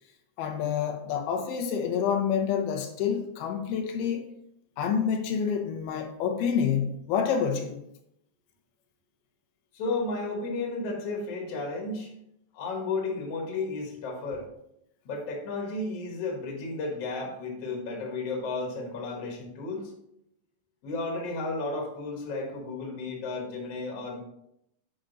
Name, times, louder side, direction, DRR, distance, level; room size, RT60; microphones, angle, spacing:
voice 1, 0.4-4.3 4.8-7.8, left 7 dB, 85° left, 2.6 m, -28 dB
voice 2, 9.7-12.1 12.5-14.5 15.1-19.9 20.8-24.2, left 3 dB, 55° left, 2.0 m, -33 dB
8.7 x 5.0 x 3.9 m
omnidirectional pair, 4.3 m